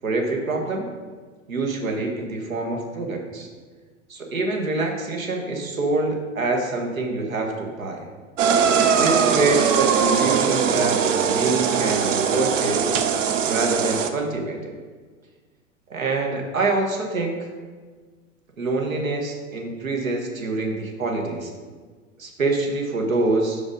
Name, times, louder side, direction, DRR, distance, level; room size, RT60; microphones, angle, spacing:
voice 1, 0.0-0.9 1.5-3.5 4.1-8.0 8.9-12.9 13.4-14.8 15.9-17.5 18.6-21.5 22.2-23.6, right 3 dB, 85° right, 2 dB, 1.2 m, -25 dB
sound 1, 8.4-14.1, right 6 dB, 70° right, 0.7 m, -21 dB
5.2 x 4.9 x 5.0 m, 1.5 s
hypercardioid pair, 95°, 40 cm